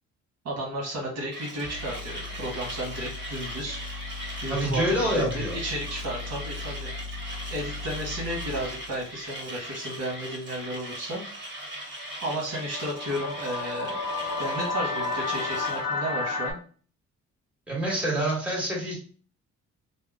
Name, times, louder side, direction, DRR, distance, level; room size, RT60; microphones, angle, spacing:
voice 1, 0.4-3.8 4.4-6.9 7.5-11.2 12.2-16.6, right 1 dB, 55° right, -2 dB, 1.2 m, -33 dB
sound 1, 1.3-1.4 1.6-9.5, left 4 dB, 35° left, 0.6 m, -39 dB
Mechanisms, 1.3-15.9, right 1 dB, 40° right, 1.5 m, -40 dB
voice 2, 4.5-5.6 17.7-19.0, right 1 dB, 5° right, -4 dB, 1.6 m, -26 dB
sound 2, 12.3-16.5, left 3 dB, 65° left, 0.9 m, -31 dB
2.7 x 2.1 x 3.6 m, 0.42 s
cardioid pair, 90°, 30 cm